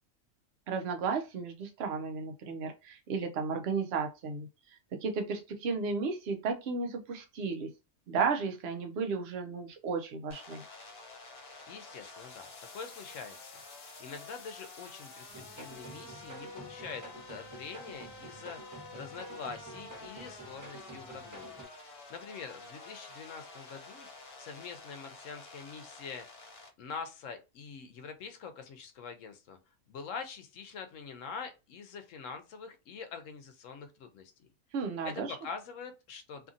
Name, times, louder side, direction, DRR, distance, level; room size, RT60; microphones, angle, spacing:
voice 1, 0.7-4.5 5.0-7.7 8.1-10.6 34.7-35.4, right 5 dB, 60° right, 0.7 m, -33 dB
sound 1, 10.3-26.7, left 3 dB, 50° left, 0.8 m, -49 dB
voice 2, 11.7-12.5 12.7-13.5 14.0-21.7 22.1-24.1 24.4-26.3 26.8-29.6 29.9-34.5 35.0-36.5, left 5 dB, 75° left, 1.0 m, -45 dB
sound 2, 15.3-21.6, right 2 dB, 20° right, 0.6 m, -50 dB
2.7 x 2.6 x 2.5 m
omnidirectional pair, 1.4 m